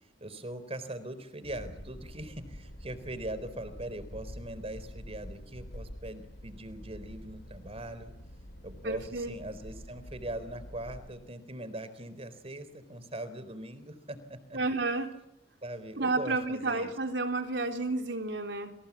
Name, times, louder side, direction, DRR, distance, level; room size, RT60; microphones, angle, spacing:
voice 1, 0.2-8.1 8.6-14.6 15.6-16.9, right 1 dB, 35° right, 13 dB, 3.9 m, -41 dB
sound 1, 1.4-11.1, equal, 65° left, 5.7 m, -47 dB
voice 2, 8.8-9.3 14.5-15.2 16.0-18.7, right 3 dB, 75° right, 4 dB, 3.5 m, -31 dB
29.5 x 27.5 x 7.4 m, 0.84 s
head